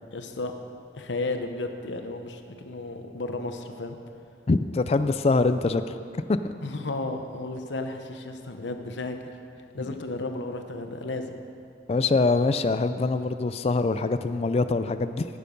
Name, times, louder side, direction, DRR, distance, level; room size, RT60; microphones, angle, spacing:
voice 1, 0.1-0.5 0.9-4.0 6.6-9.3 9.7-11.4, left 2 dB, 80° left, 6 dB, 0.9 m, -33 dB
voice 2, 4.5-5.8 6.1-6.5 9.8-9.9 11.9-15.3, left 3 dB, 35° left, 10 dB, 0.3 m, -24 dB
15.0 x 6.7 x 5.3 m, 2.6 s
head